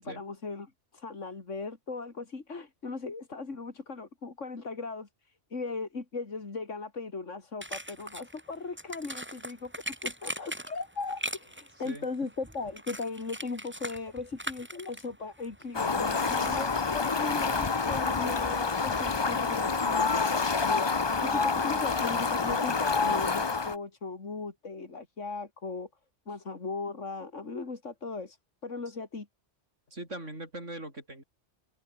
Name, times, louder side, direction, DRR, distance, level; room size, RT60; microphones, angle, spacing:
voice 1, 0.0-5.1 5.5-25.9 26.3-28.4 28.6-29.3, left 4 dB, 85° left, 3.0 m, -38 dB
sound 1, 7.6-23.7, right 1 dB, 10° right, 3.0 m, -44 dB
Fowl, 15.7-23.8, left 4 dB, 25° left, 0.7 m, -28 dB
voice 2, 29.9-31.2, right 1 dB, 85° right, 8.2 m, -41 dB
open air
omnidirectional pair, 1.2 m